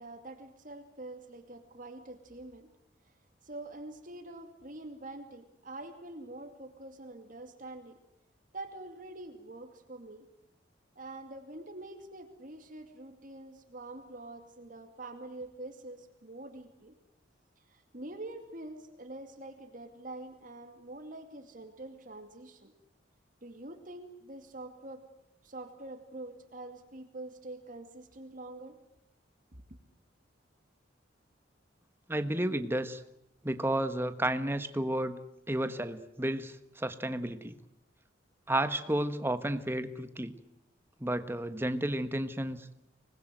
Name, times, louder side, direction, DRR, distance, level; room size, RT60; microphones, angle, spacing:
voice 1, 0.0-2.7 3.0-3.1 3.4-8.0 8.5-10.3 11.0-16.9 17.7-22.7 23.4-25.0 25.4-28.8 29.5-29.6, right 2 dB, 45° right, 6 dB, 2.5 m, -45 dB
voice 2, 32.1-33.0 33.4-35.2 35.5-37.6 38.5-40.3 41.0-42.7, right 1 dB, 10° right, 10 dB, 1.4 m, -32 dB
26.0 x 20.5 x 9.2 m, 0.82 s
head